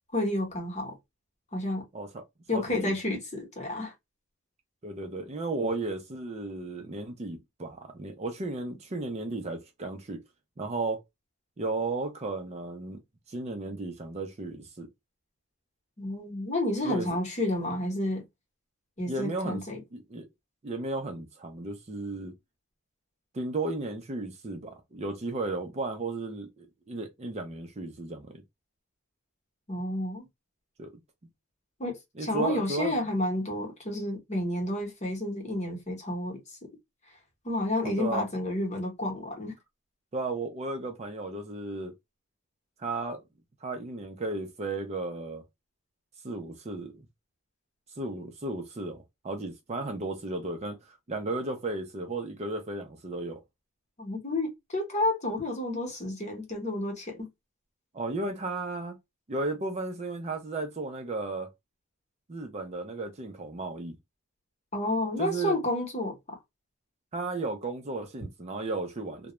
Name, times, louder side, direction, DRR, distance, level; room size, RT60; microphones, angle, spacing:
voice 1, 0.1-0.9 1.5-1.8 2.5-3.9 16.0-18.2 19.0-19.8 29.7-30.3 31.8-36.4 37.4-39.5 54.0-57.3 64.7-66.2, left 1 dB, 35° left, 0.9 m, -30 dB
voice 2, 2.5-3.0 4.8-10.2 10.6-11.0 11.6-13.0 13.3-14.9 16.8-17.2 19.1-19.6 19.9-20.3 20.6-22.3 23.3-28.4 30.8-30.9 32.2-33.0 37.8-38.3 40.1-41.9 42.8-43.2 43.6-45.4 46.2-47.1 48.0-53.4 57.9-59.0 59.3-61.5 62.3-64.0 65.2-65.6 67.1-69.3, right 2 dB, 30° right, 0.4 m, -34 dB
2.3 x 2.1 x 2.9 m
head